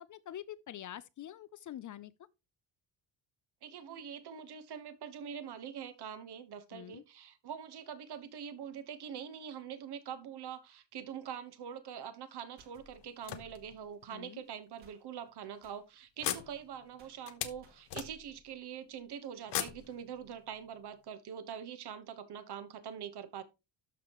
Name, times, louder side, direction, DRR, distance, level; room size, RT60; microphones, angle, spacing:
voice 1, 0.0-2.1 6.7-7.0 14.1-14.4, left 11 dB, 45° left, 0.4 m, -46 dB
voice 2, 3.6-23.4, right 8 dB, 60° right, 1.3 m, -44 dB
sound 1, 12.6-12.8 14.8-15.0 15.6-16.6 17.0-17.2 17.6-17.9, right 4 dB, 80° right, 6.0 m, -63 dB
sound 2, 12.7-14.1 14.8-14.9 15.3-15.4 16.2-18.5 19.4-20.6, left 11 dB, 65° left, 1.1 m, -40 dB
12.5 x 5.4 x 3.0 m
cardioid pair, 150°, 45 cm